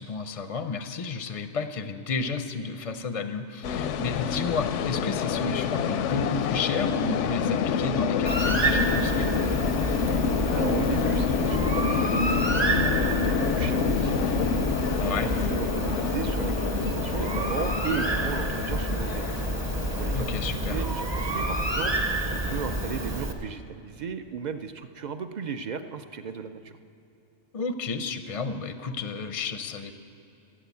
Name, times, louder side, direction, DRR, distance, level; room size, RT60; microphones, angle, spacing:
voice 1, 0.0-9.3 15.0-15.3 20.1-20.9 27.5-29.9, left 4 dB, 45° left, 9 dB, 0.5 m, -31 dB
sound 1, 3.6-23.2, left 6 dB, 85° left, 0.9 m, -28 dB
Bird, 8.3-23.3, right 1 dB, 25° right, 0.8 m, -29 dB
voice 2, 10.1-14.3 14.7-19.3 20.0-22.0 22.3-26.8, right 6 dB, 55° right, 9 dB, 0.5 m, -36 dB
15.0 x 7.6 x 8.3 m, 2.8 s
omnidirectional pair, 1.2 m